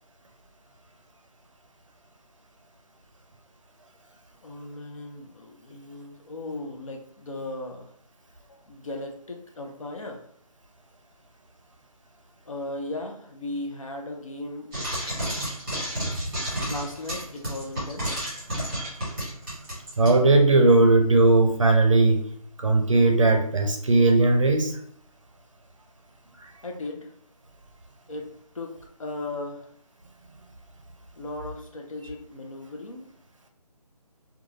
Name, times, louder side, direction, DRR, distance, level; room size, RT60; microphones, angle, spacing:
voice 1, 4.4-7.9 8.5-10.3 12.5-14.7 15.8-16.0 16.6-18.2 26.6-27.1 28.1-29.7 31.2-33.1, left 2 dB, 55° left, 2 dB, 0.6 m, -37 dB
Frying (food), 14.7-20.2, right 1 dB, 10° right, 1.3 m, -31 dB
voice 2, 20.0-22.3 22.6-24.8, right 2 dB, 55° right, 4 dB, 0.5 m, -18 dB
2.5 x 2.3 x 3.0 m, 0.63 s
figure-of-eight pair, 175°, 20 cm